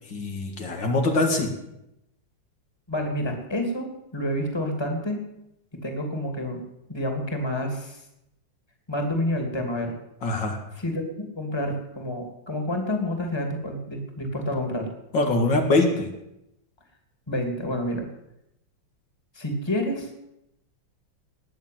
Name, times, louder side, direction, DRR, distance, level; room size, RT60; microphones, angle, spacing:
voice 1, 0.1-1.5 10.2-10.6 15.1-16.1, left 2 dB, 70° left, 2 dB, 2.8 m, -23 dB
voice 2, 2.9-5.2 5.8-6.6 6.9-8.0 8.9-9.9 10.8-11.0 11.3-14.9 17.3-18.1 19.3-20.1, left 1 dB, 15° left, 3 dB, 2.7 m, -28 dB
19.5 x 7.0 x 9.4 m, 0.85 s
omnidirectional pair, 2.1 m